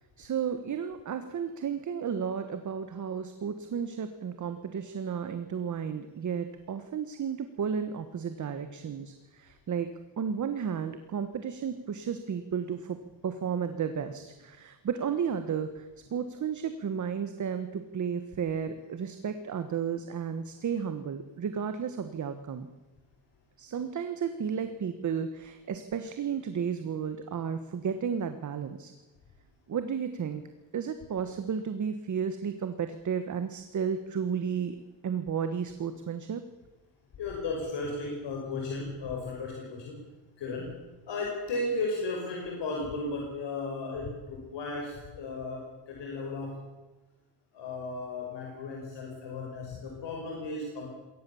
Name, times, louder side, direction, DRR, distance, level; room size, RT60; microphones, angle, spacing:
voice 1, 0.2-13.0 13.2-15.9 16.1-22.7 23.6-28.9 29.7-30.4 30.7-34.8 35.0-36.4, right 7 dB, 40° right, 9 dB, 1.4 m, -33 dB
voice 2, 37.2-40.0 40.4-40.8 41.1-46.7 47.5-50.9, left 3 dB, 65° left, 0 dB, 5.4 m, -35 dB
21.5 x 18.5 x 7.1 m, 1.2 s
cardioid pair, 135°, 46 cm